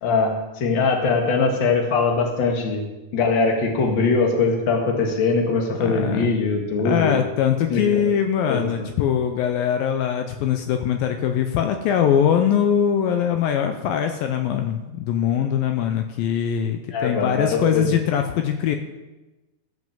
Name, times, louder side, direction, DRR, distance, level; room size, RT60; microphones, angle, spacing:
voice 1, 0.0-2.8 3.1-7.2 7.7-8.0 8.5-8.9 16.9-18.0, left 4 dB, 40° left, 1 dB, 1.8 m, -22 dB
voice 2, 5.8-6.3 6.8-18.8, left 9 dB, 80° left, 6 dB, 2.4 m, -22 dB
14.5 x 6.4 x 7.3 m, 1.1 s
omnidirectional pair, 4.5 m